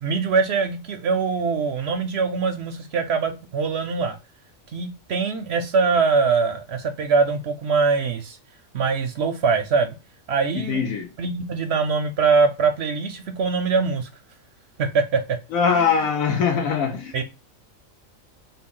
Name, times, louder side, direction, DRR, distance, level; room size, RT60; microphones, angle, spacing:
voice 1, 0.0-4.2 4.7-8.4 8.7-9.9 10.3-10.8 11.2-14.1 14.8-15.4 15.7-16.1 17.1-17.2, right 5 dB, 65° right, 0.7 m, -23 dB
voice 2, 10.7-11.1 15.5-17.2, left 6 dB, 80° left, 1.4 m, -22 dB
3.7 x 2.3 x 3.6 m
omnidirectional pair, 1.4 m